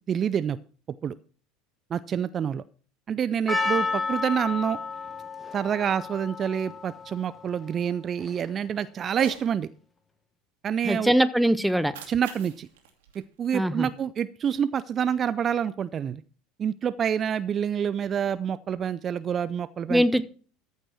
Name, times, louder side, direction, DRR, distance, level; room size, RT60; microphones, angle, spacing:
voice 1, 0.1-0.6 1.0-1.2 1.9-2.6 3.1-4.8 5.5-9.7 10.6-11.2 12.1-12.7 13.4-16.2 16.6-20.0, right 8 dB, 35° right, 15 dB, 0.4 m, -27 dB
Percussion, 3.5-8.7, left 3 dB, 15° left, 1.5 m, -32 dB
Cat, 9.1-9.5 11.7-14.1, right 8 dB, 65° right, 2.3 m, -45 dB
voice 2, 10.8-11.9 13.5-13.9 19.9-20.2, equal, ahead, 16 dB, 0.7 m, -22 dB
14.0 x 5.4 x 5.9 m, 0.42 s
figure-of-eight pair, 70°, 0 cm